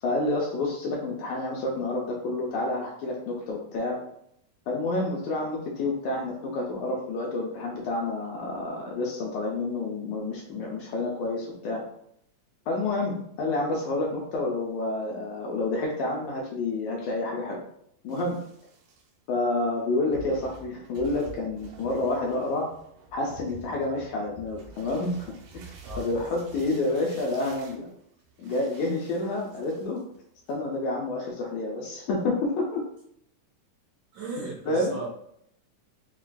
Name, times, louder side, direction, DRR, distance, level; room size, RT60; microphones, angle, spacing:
voice 1, 0.0-4.0 4.7-11.8 12.7-17.6 18.0-18.4 19.3-22.7 23.1-25.3 25.5-25.6 26.0-27.9 28.4-30.0 30.5-32.8 34.7-34.9, left 2 dB, 80° left, -2 dB, 1.8 m, -29 dB
sound 1, 18.1-19.1 19.8-19.9 20.1-30.2 30.5-30.8, right 2 dB, 90° right, 2.5 m, -47 dB
voice 2, 34.1-35.1, right 3 dB, 65° right, -5 dB, 2.4 m, -36 dB
6.1 x 2.4 x 2.2 m, 0.70 s
omnidirectional pair, 3.8 m